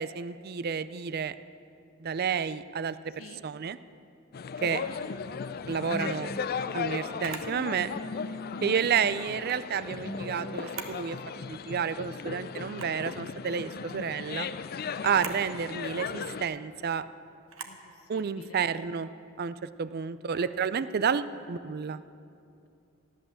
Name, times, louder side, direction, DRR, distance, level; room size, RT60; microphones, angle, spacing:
voice 1, 0.0-1.4 2.0-3.1 3.4-3.8 4.6-4.8 5.7-6.3 6.7-7.9 8.6-11.2 11.5-14.5 15.0-17.0 18.1-19.1 19.4-22.0, right 6 dB, 50° right, 15 dB, 0.4 m, -30 dB
sound 1, 4.3-16.4, left 6 dB, 50° left, 0.4 m, -37 dB
voice 2, 4.8-5.1 8.5-8.8 15.0-15.5 17.6-19.0 20.3-20.6, left 3 dB, 90° left, 7 dB, 0.9 m, -49 dB
sound 2, 5.4-11.5, left 1 dB, 15° left, 0.7 m, -44 dB
Camera, 7.2-7.5 9.3-9.6 10.5-11.0 11.5-11.6 12.6-13.0 15.0-15.4 17.5-17.8, right 6 dB, 70° right, 1.1 m, -41 dB
15.0 x 11.0 x 7.1 m, 2.5 s
head